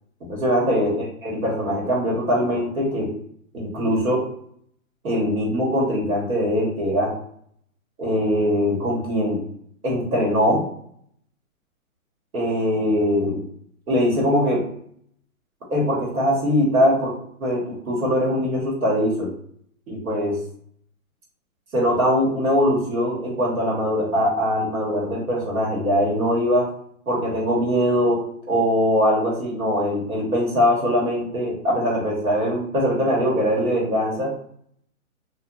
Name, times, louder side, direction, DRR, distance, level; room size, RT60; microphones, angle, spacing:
voice 1, 0.2-0.9 1.2-3.1 3.5-4.2 5.0-7.1 8.0-9.4 9.8-10.6 12.3-13.4 13.9-14.6 15.7-17.1 17.4-19.3 19.9-20.4 21.7-26.7 27.1-28.2 28.5-34.3, equal, 75° right, -3 dB, 1.3 m, -21 dB
2.8 x 2.3 x 2.4 m, 0.65 s
hypercardioid pair, 170°, 42 cm